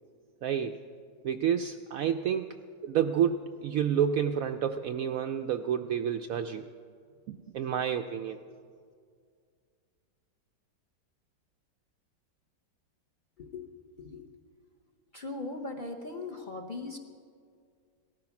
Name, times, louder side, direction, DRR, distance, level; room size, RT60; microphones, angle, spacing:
voice 1, 0.4-0.8 1.2-2.6 2.8-6.7 7.3-8.4, right 8 dB, 70° right, 7 dB, 0.8 m, -29 dB
voice 2, 15.1-17.0, left 3 dB, 35° left, 4 dB, 0.9 m, -39 dB
18.0 x 13.5 x 5.9 m, 2.1 s
omnidirectional pair, 1.9 m